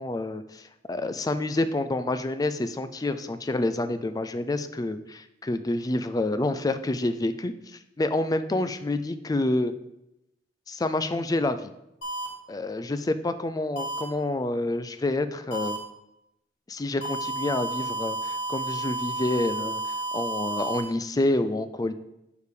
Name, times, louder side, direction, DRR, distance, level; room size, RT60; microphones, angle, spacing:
voice 1, 0.0-9.7 10.7-11.7 12.5-15.8 16.7-21.9, left 2 dB, 20° left, 11 dB, 0.4 m, -28 dB
sound 1, 12.0-12.3 13.8-14.0 15.5-15.8 17.0-20.8, right 2 dB, 70° left, 2.1 m, -31 dB
6.7 x 5.1 x 4.8 m, 0.86 s
head